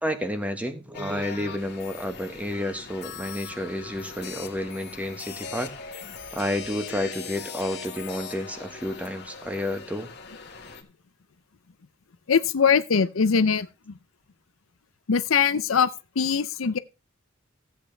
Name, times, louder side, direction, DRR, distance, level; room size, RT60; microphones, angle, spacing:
voice 1, 0.0-5.7 6.3-10.1, left 1 dB, 5° right, 1.3 m, -30 dB
sound 1, 0.9-10.8, left 5 dB, 55° left, 1.8 m, -40 dB
voice 2, 12.3-13.7 15.1-15.9 16.2-16.8, left 6 dB, 75° left, 0.6 m, -21 dB
14.5 x 8.3 x 3.3 m
head